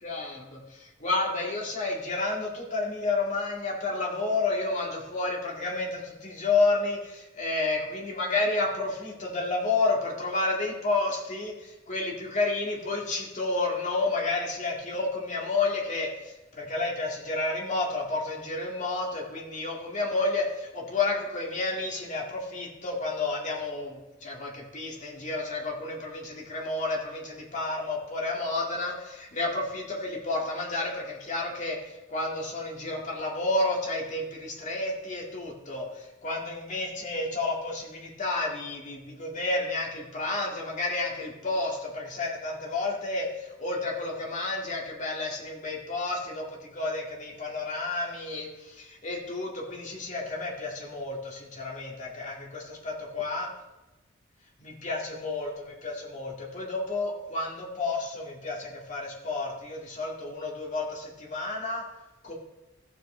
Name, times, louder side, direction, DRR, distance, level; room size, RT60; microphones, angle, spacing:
voice 1, 0.0-53.5 54.6-61.8 62.2-62.3, left 3 dB, 40° left, -2 dB, 2.1 m, -31 dB
14.5 x 7.6 x 3.3 m, 1.0 s
head